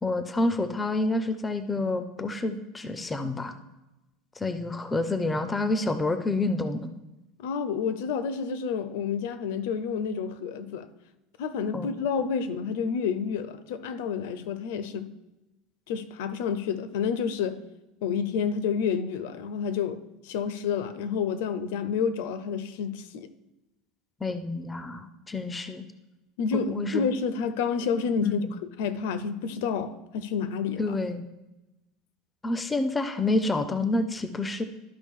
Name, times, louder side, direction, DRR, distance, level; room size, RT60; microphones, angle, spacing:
voice 1, 0.0-3.5 4.4-6.9 11.7-11.9 24.2-25.8 26.5-27.0 28.2-28.5 30.8-31.2 32.4-34.6, left 2 dB, 10° left, 0.4 m, -28 dB
voice 2, 7.4-10.9 11.4-15.1 15.9-17.6 18.0-20.0 20.2-23.3 26.4-28.5 28.8-30.9, left 6 dB, 70° left, 0.6 m, -29 dB
12.0 x 4.9 x 3.6 m
cardioid pair, 170°, 0 cm